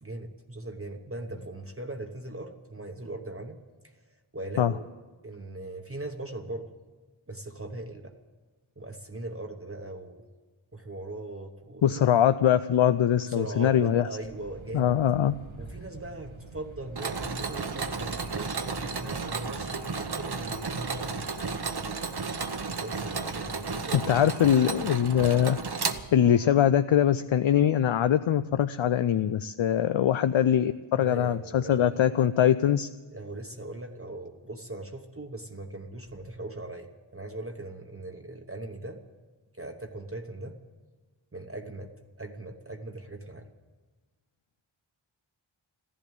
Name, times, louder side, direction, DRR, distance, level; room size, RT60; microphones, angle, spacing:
voice 1, 0.0-3.6 4.3-4.9 5.2-6.7 7.3-8.1 8.8-10.2 10.7-12.2 13.3-15.0 15.6-21.3 22.7-24.1 30.9-32.2 33.1-39.0 39.5-40.6 41.3-41.9 42.2-43.5, right 2 dB, 25° right, 3 dB, 1.1 m, -40 dB
voice 2, 11.8-14.1 14.7-15.3 23.9-25.6 26.1-32.9, left 10 dB, 70° left, 11 dB, 0.5 m, -22 dB
sound 1, 14.2-21.3, right 2 dB, 75° right, 1.2 m, -46 dB
Mechanisms, 17.0-26.5, right 4 dB, 50° right, 1.0 m, -33 dB
14.5 x 11.0 x 8.9 m, 1.3 s
wide cardioid pair, 55°, 48 cm